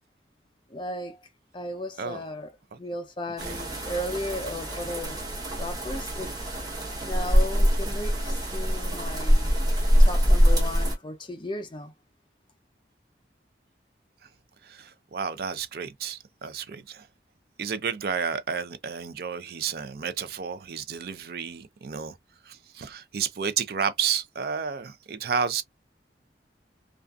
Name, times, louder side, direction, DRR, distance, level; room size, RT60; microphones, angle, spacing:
voice 1, 0.7-1.2 1.5-2.5 2.8-5.2 5.6-6.3 7.0-9.6 10.0-11.9, left 1 dB, 25° left, 0.5 m, -35 dB
sound 1, 3.4-11.0, equal, 20° right, 0.8 m, -23 dB
voice 2, 14.6-17.1 17.6-22.2 22.4-25.6, right 7 dB, 55° right, 0.4 m, -31 dB
2.4 x 2.3 x 2.3 m
head